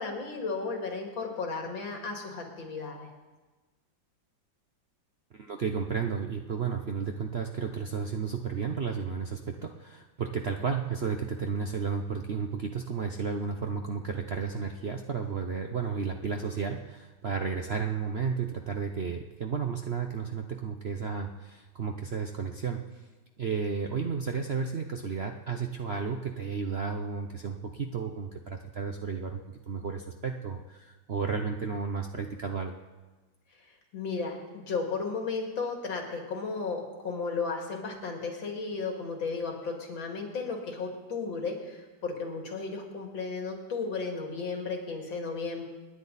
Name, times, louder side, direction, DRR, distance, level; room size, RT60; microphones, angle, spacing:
voice 1, 0.0-3.1 33.9-45.6, left 4 dB, 90° left, 1 dB, 3.1 m, -34 dB
voice 2, 5.3-22.8 23.4-32.8, right 5 dB, 60° right, 4 dB, 0.6 m, -33 dB
27.5 x 10.5 x 4.1 m, 1.2 s
omnidirectional pair, 2.1 m